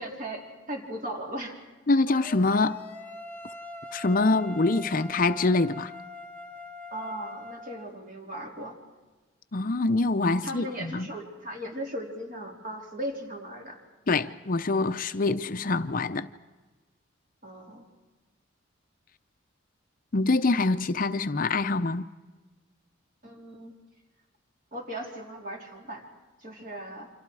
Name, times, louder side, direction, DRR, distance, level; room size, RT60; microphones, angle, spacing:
voice 1, 0.0-1.6 6.9-8.8 10.4-13.8 17.4-17.9 23.2-23.7 24.7-26.0 26.4-27.1, right 1 dB, 40° right, 4.0 m, -37 dB
voice 2, 1.9-2.8 3.9-5.9 9.5-11.1 14.1-16.3 20.1-22.1, left 3 dB, 45° left, 0.6 m, -25 dB
sound 1, 2.1-7.8, left 2 dB, 10° left, 1.6 m, -43 dB
29.0 x 26.5 x 4.8 m
head